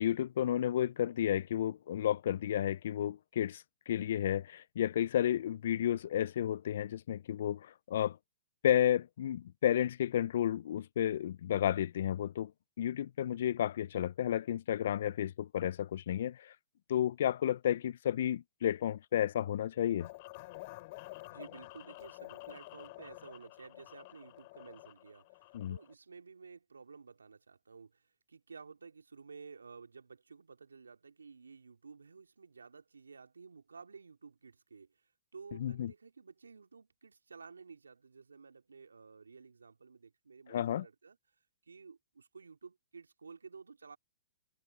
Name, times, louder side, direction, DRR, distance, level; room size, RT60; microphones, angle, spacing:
voice 1, 0.0-8.2 8.6-12.5 12.8-16.5 16.9-20.1 25.5-25.8 35.6-35.9 40.5-40.9, left 11 dB, 60° left, 0.5 m, -32 dB
sound 1, 20.0-25.9, left 23 dB, 45° left, 2.8 m, -50 dB
voice 2, 21.3-41.2 41.6-44.0, right 5 dB, 85° right, 2.9 m, -53 dB
hypercardioid pair, 120°, 0 cm